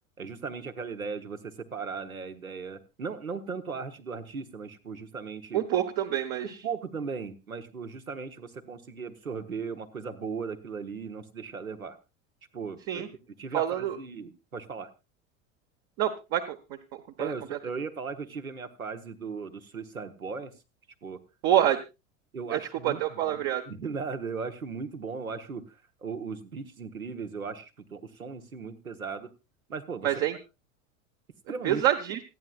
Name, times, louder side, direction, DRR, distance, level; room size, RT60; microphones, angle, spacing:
voice 1, 0.2-5.6 6.4-12.0 12.5-13.0 13.4-14.9 17.2-20.5 21.0-21.2 22.3-29.3 29.7-30.1 31.5-31.8, right 5 dB, 85° right, 8 dB, 1.3 m, -37 dB
voice 2, 5.5-6.5 12.9-13.1 13.5-14.0 16.0-16.6 16.9-17.6 21.4-21.8 22.5-23.6 30.0-30.4 31.6-32.2, right 11 dB, 50° right, 6 dB, 1.2 m, -27 dB
27.0 x 9.5 x 2.4 m, 0.27 s
figure-of-eight pair, 75°, 41 cm